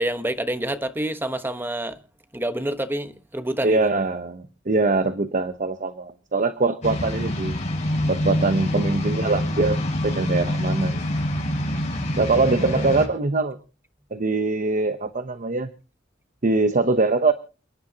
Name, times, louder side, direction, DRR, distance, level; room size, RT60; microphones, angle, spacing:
voice 1, 0.0-2.0 2.3-3.9 12.6-12.9, right 1 dB, 10° right, 1.2 m, -28 dB
voice 2, 3.6-7.6 8.1-11.0 12.2-13.6 14.1-15.7 16.4-17.3, right 3 dB, 45° right, 0.9 m, -23 dB
sound 1, 6.8-13.1, left 1 dB, 40° left, 6.7 m, -25 dB
29.0 x 10.5 x 2.9 m
head